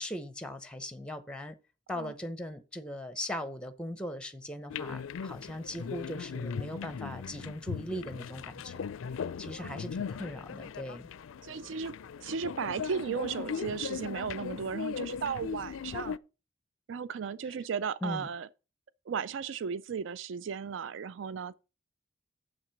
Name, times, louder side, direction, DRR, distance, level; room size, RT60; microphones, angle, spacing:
voice 1, 0.0-1.6 1.9-8.8 9.4-11.1 18.0-18.3, left 1 dB, 5° left, 0.7 m, -39 dB
sound 1, 4.7-16.2, left 6 dB, 90° left, 0.4 m, -38 dB
voice 2, 11.4-16.2 16.9-18.5 19.1-21.5, right 6 dB, 70° right, 0.4 m, -35 dB
7.4 x 5.9 x 5.9 m
head